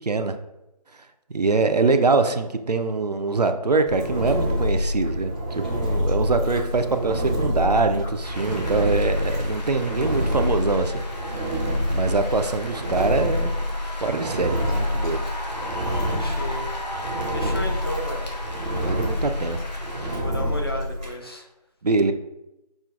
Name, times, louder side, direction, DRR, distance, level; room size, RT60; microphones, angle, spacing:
voice 1, 0.0-0.4 1.3-11.0 11.3-11.6 11.9-13.5 14.0-15.2 17.4-17.5 18.8-19.6 19.9-20.2 21.8-22.1, right 3 dB, 70° right, 8 dB, 0.5 m, -24 dB
Engine, 3.9-21.2, left 1 dB, 5° right, 0.6 m, -27 dB
sound 1, 8.2-20.2, left 1 dB, 75° left, 0.9 m, -36 dB
voice 2, 16.2-16.7 17.3-18.4 20.1-21.5, equal, 35° left, 1 dB, 0.5 m, -33 dB
6.1 x 2.4 x 2.4 m, 0.91 s
figure-of-eight pair, 160°, 21 cm